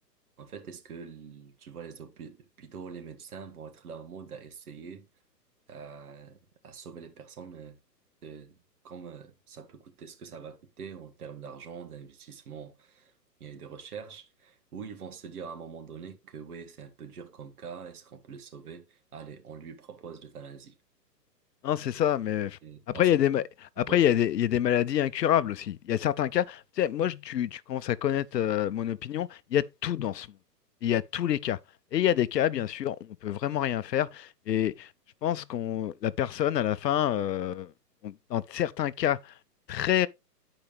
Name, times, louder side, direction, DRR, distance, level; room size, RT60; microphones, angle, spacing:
voice 1, 0.4-5.1 5.7-7.8 8.2-8.6 8.8-13.1 13.4-20.7 22.6-23.3 23.8-24.1, right 6 dB, 65° right, 1.6 m, -44 dB
voice 2, 21.6-22.6 22.9-23.4 23.8-30.3 30.8-31.6 31.9-34.9 35.2-37.7 38.0-39.3 39.7-40.1, left 11 dB, 75° left, 0.6 m, -27 dB
10.5 x 4.9 x 3.4 m
hypercardioid pair, 130°, 49 cm